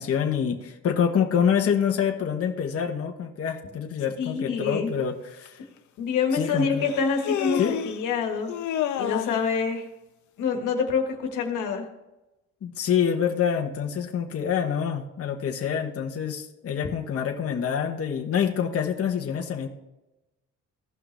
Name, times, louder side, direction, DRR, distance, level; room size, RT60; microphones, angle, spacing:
voice 1, 0.0-5.6 6.3-6.9 7.6-7.8 12.6-19.7, left 8 dB, 50° left, 3 dB, 1.1 m, -26 dB
voice 2, 4.2-4.9 6.0-8.5 9.0-9.8 10.4-11.9, left 5 dB, 90° left, 3 dB, 1.6 m, -26 dB
Human voice, 5.5-5.6 6.8-8.0 8.5-9.5, left 10 dB, 70° left, 0.8 m, -29 dB
16.0 x 5.8 x 3.3 m, 1.0 s
cardioid pair, 90°, 30 cm